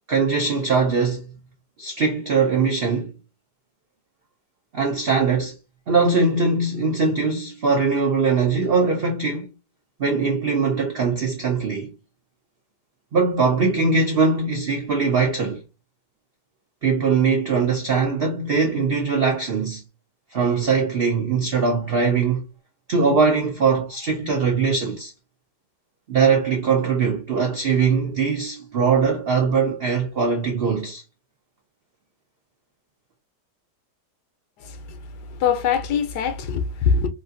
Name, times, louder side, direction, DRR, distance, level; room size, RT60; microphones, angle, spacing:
voice 1, 0.1-1.3 1.8-3.1 4.7-5.5 5.9-9.5 10.0-11.9 13.1-15.6 16.8-19.8 20.3-22.5 22.9-25.1 26.1-31.0, right 5 dB, 75° right, 0.5 m, -21 dB
voice 2, 34.6-35.0 35.3-37.1, left 6 dB, 75° left, 1.2 m, -23 dB
3.1 x 2.5 x 2.5 m
omnidirectional pair, 1.8 m